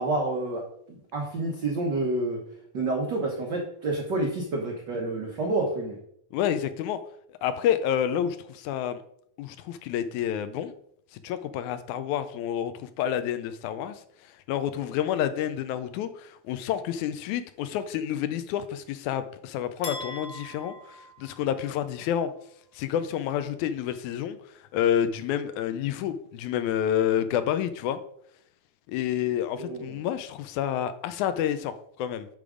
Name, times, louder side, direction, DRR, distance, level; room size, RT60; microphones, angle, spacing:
voice 1, 0.0-2.4 2.7-6.0 29.6-29.8, right 2 dB, 75° right, 1 dB, 1.0 m, -29 dB
voice 2, 6.3-7.0 7.4-9.0 9.4-10.7 11.1-14.0 14.5-22.3 22.7-24.4 24.7-28.0 28.9-32.3, left 10 dB, 80° left, 11 dB, 1.9 m, -29 dB
sound 1, 19.8-22.0, left 1 dB, 55° left, 0.9 m, -41 dB
10.5 x 3.6 x 4.9 m, 0.68 s
omnidirectional pair, 3.6 m